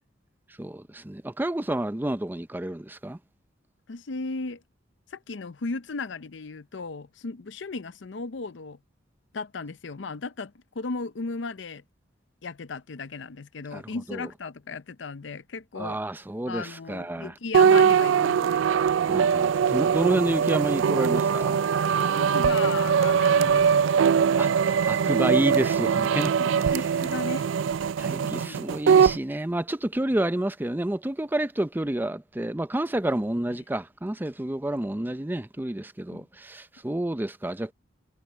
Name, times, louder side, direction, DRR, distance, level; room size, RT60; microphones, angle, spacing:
voice 1, 0.6-3.2 13.7-13.8 14.1-14.3 15.8-17.3 19.1-21.6 24.4-26.8 28.0-37.7, right 1 dB, 10° right, 0.5 m, -29 dB
voice 2, 3.9-4.6 5.1-8.8 9.3-11.8 12.4-16.0 16.5-18.6 22.0-23.9 26.0-27.5 28.2-28.6 36.1-36.2, left 3 dB, 70° left, 0.6 m, -36 dB
sound 1, 17.5-29.2, right 7 dB, 90° right, 0.4 m, -22 dB
head